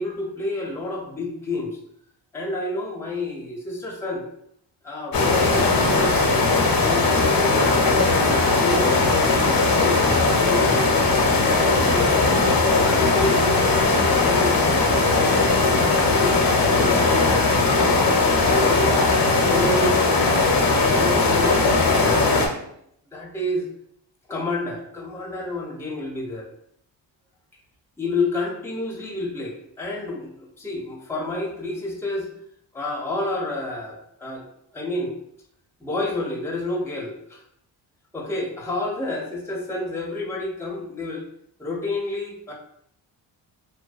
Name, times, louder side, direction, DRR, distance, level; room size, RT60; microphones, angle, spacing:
voice 1, 0.0-1.8 2.3-4.3 4.8-11.0 11.7-13.7 14.2-17.9 18.4-19.0 19.4-20.0 20.2-22.6 23.1-23.7 24.3-26.5 28.0-32.3 32.7-34.4 34.7-35.2 35.8-37.4 38.1-41.2 41.6-42.5, left 2 dB, 5° left, -1 dB, 0.5 m, -30 dB
sound 1, 5.1-22.5, left 3 dB, 50° left, 0.6 m, -19 dB
2.5 x 2.1 x 2.3 m, 0.72 s
cardioid pair, 70°, 46 cm